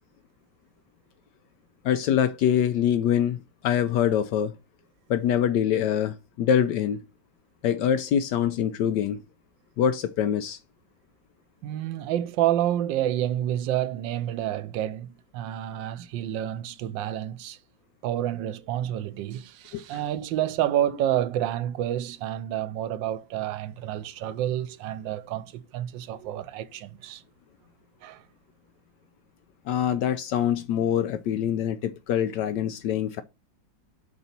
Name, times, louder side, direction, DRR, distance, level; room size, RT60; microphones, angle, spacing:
voice 1, 1.8-4.5 5.1-7.0 7.6-9.2 9.8-10.6 19.7-19.8 29.7-33.2, left 9 dB, 75° left, 1.1 m, -24 dB
voice 2, 11.6-17.6 18.0-27.2 28.0-28.2, right 12 dB, 85° right, 1.3 m, -29 dB
5.4 x 4.0 x 5.8 m
omnidirectional pair, 2.0 m